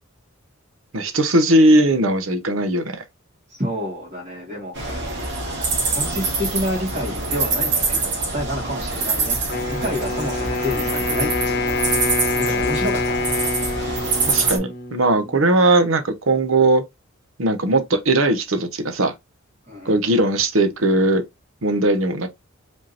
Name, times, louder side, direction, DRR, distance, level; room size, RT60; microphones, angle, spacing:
voice 1, 0.9-3.0 14.3-16.8 17.4-19.1 19.9-21.2 21.6-22.3, right 2 dB, 75° right, 0.9 m, -18 dB
voice 2, 3.5-5.1 5.8-9.4 9.6-11.9 12.4-13.3 19.7-20.0, equal, 35° right, 2.2 m, -29 dB
sound 1, 4.7-14.6, right 3 dB, 60° right, 1.8 m, -25 dB
Wind instrument woodwind instrument, 9.5-15.5, left 3 dB, 55° left, 1.0 m, -26 dB
5.1 x 3.6 x 2.8 m
head